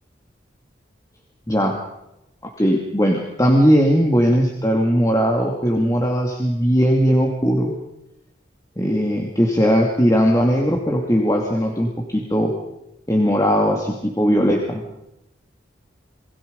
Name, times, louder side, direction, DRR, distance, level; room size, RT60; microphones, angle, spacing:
voice 1, 1.5-1.8 2.6-7.7 8.8-12.5 13.1-14.8, equal, 15° left, 1 dB, 2.5 m, -18 dB
28.0 x 20.5 x 5.3 m, 0.86 s
head